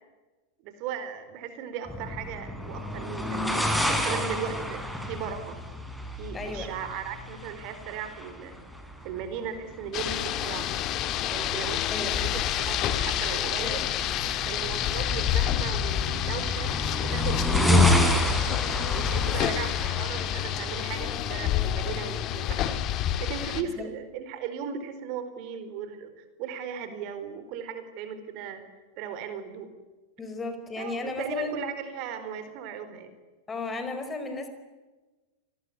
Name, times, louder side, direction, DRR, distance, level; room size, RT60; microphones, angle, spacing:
voice 1, 0.6-3.4 3.7-5.6 6.2-8.5 9.0-10.7 11.3-13.9 14.5-16.7 17.0-18.0 18.9-28.6 29.0-29.7 30.8-33.1, right 8 dB, 45° right, 10 dB, 4.2 m, -37 dB
sound 1, 1.9-21.6, equal, ahead, 4.6 m, -30 dB
voice 2, 6.3-6.7 11.9-12.1 19.2-19.5 23.6-23.9 30.2-31.6 33.5-34.5, left 3 dB, 15° left, 8 dB, 4.9 m, -34 dB
Rain, 9.9-23.6, left 11 dB, 35° left, 2.2 m, -28 dB
29.5 x 20.0 x 9.8 m, 1.2 s
figure-of-eight pair, 90°, 0 cm